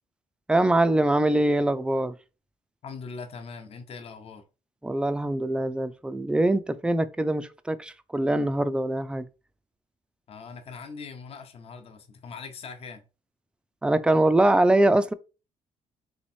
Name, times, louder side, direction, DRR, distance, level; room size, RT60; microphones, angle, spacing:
voice 1, 0.5-2.1 4.8-9.3 13.8-15.1, right 1 dB, 5° right, 0.3 m, -23 dB
voice 2, 2.8-4.4 10.3-13.0, left 5 dB, 45° left, 0.7 m, -41 dB
3.4 x 3.0 x 4.2 m
cardioid pair, 125°, 14 cm